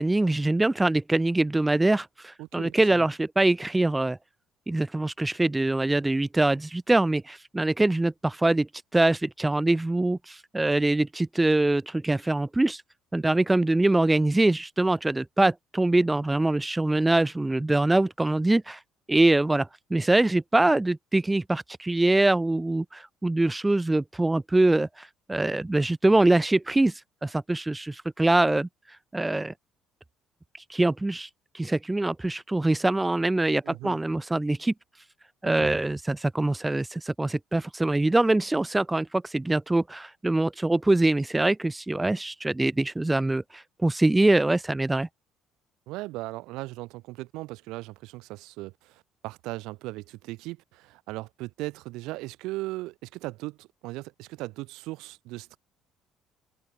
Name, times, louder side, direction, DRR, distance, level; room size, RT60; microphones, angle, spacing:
voice 1, 0.0-4.2 4.7-8.7 8.9-12.8 13.1-18.8 19.1-26.9 27.2-28.7 29.1-29.5 30.7-31.3 31.5-34.7 35.4-45.1, right 2 dB, 10° right, 0.5 m, -24 dB
voice 2, 2.4-3.1 33.6-34.0 35.5-35.7 45.9-55.6, right 20 dB, 85° right, 3.8 m, -38 dB
open air
cardioid pair, 175°, 0 cm